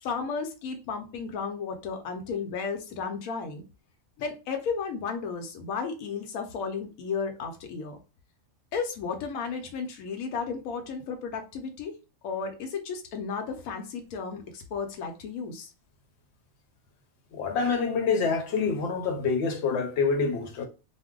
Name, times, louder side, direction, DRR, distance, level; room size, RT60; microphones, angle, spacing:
voice 1, 0.0-3.6 4.2-8.0 8.7-12.0 12.2-15.7, left 5 dB, 85° left, 1.0 m, -33 dB
voice 2, 17.3-20.7, left 5 dB, 60° left, 0.8 m, -26 dB
2.6 x 2.0 x 3.6 m
omnidirectional pair, 1.5 m